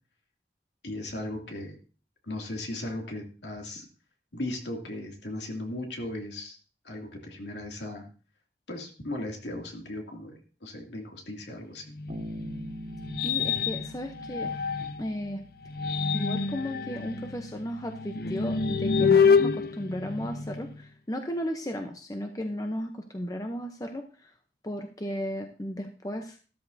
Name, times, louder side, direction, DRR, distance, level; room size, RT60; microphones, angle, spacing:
voice 1, 0.8-1.8 2.2-3.9 4.3-6.6 6.8-8.1 8.7-11.8, left 1 dB, 80° left, 1 dB, 2.6 m, -37 dB
sound 1, 12.0-15.1 15.6-20.8, left 5 dB, 55° left, 0.6 m, -27 dB
Bass guitar, 12.1-15.9, equal, 50° right, 2.0 m, -43 dB
voice 2, 13.2-14.5 15.0-15.4 16.1-24.3 24.6-26.4, equal, 20° left, 5 dB, 0.8 m, -35 dB
13.0 x 13.0 x 2.7 m, 0.37 s
head